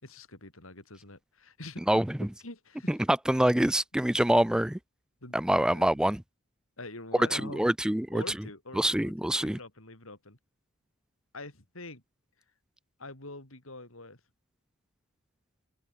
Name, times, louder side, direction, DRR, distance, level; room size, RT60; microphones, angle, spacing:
voice 1, 0.0-1.8 2.4-3.0 5.2-6.0 6.8-7.7 8.1-10.4 11.3-12.0 13.0-14.2, left 2 dB, 70° left, 5.4 m, -45 dB
voice 2, 1.9-2.3 2.9-4.8 5.3-6.2 7.2-8.2 8.8-9.6, right 1 dB, 5° right, 0.3 m, -25 dB
head